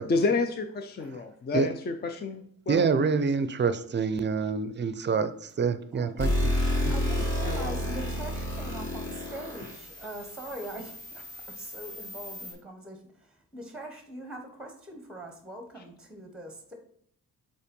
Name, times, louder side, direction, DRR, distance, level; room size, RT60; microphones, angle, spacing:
voice 1, 0.1-2.9 7.4-7.8 15.8-15.9, left 3 dB, 30° left, 6 dB, 0.5 m, -30 dB
voice 2, 2.7-6.5 6.8-6.9, right 5 dB, 35° right, 13 dB, 0.5 m, -27 dB
sound 1, 6.2-12.5, equal, 50° left, 2.9 m, -31 dB
voice 3, 6.9-11.2 11.6-13.0 13.5-16.7, right 1 dB, 5° right, 5 dB, 0.9 m, -42 dB
5.5 x 4.3 x 5.2 m, 0.65 s
wide cardioid pair, 140°, 34 cm